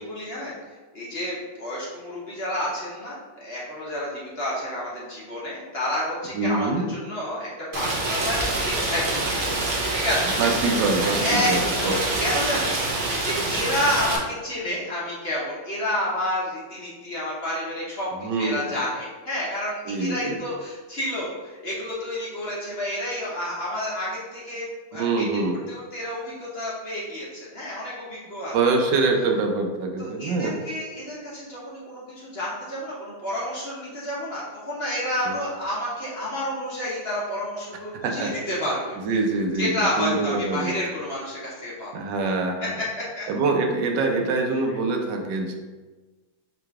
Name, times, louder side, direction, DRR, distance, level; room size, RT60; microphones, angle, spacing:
voice 1, 0.1-0.5 0.9-7.5 7.7-9.6 9.9-10.4 10.7-10.8 11.2-11.5 11.8-18.1 18.4-25.3 25.7-28.5 30.0-38.9 39.6-41.9 42.6-43.3, left 1 dB, 45° left, -6 dB, 1.0 m, -30 dB
voice 2, 6.3-6.9 10.4-12.0 18.1-18.6 19.8-20.4 24.9-25.6 28.5-30.6 35.2-35.4 37.9-38.3 39.0-40.8 41.9-42.7 43.3-45.5, right 3 dB, 85° right, 2 dB, 1.3 m, -24 dB
Rain, 7.7-14.2, right 2 dB, 55° right, 0.6 m, -26 dB
3.7 x 3.0 x 4.6 m, 1.3 s
omnidirectional pair, 1.8 m